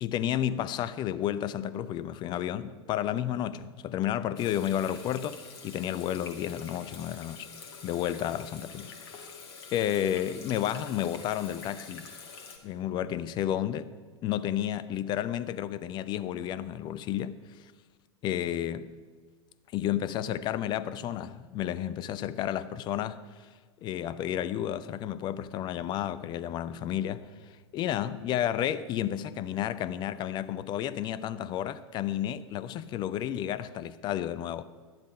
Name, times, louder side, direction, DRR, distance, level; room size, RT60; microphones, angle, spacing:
voice 1, 0.0-5.3 5.6-7.5 7.8-8.9 9.7-12.0 12.6-13.9 14.2-17.4 18.2-18.8 19.7-23.1 23.8-27.2 27.7-34.6, left 11 dB, 30° left, 0.6 m, -31 dB
Water tap faucet / Sink (filling or washing), 4.4-12.6, left 5 dB, 60° left, 2.0 m, -46 dB
12.0 x 10.5 x 5.2 m
figure-of-eight pair, 90°, 15 cm